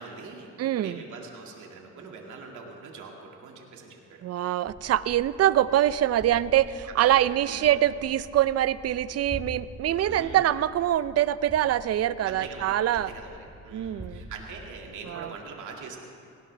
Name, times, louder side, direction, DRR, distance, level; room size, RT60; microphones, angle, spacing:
voice 1, 0.0-0.5 0.8-4.2 7.0-7.8 10.1-10.5 12.2-13.4 13.6-16.0, right 4 dB, 75° right, 0 dB, 2.2 m, -42 dB
voice 2, 0.6-1.0 4.2-13.1 13.7-14.2 15.1-15.3, right 12 dB, 55° right, 16 dB, 0.5 m, -24 dB
sound 1, 4.7-14.9, equal, ahead, 3.2 m, -46 dB
18.0 x 18.0 x 3.4 m, 2.5 s
cardioid pair, 90°, 30 cm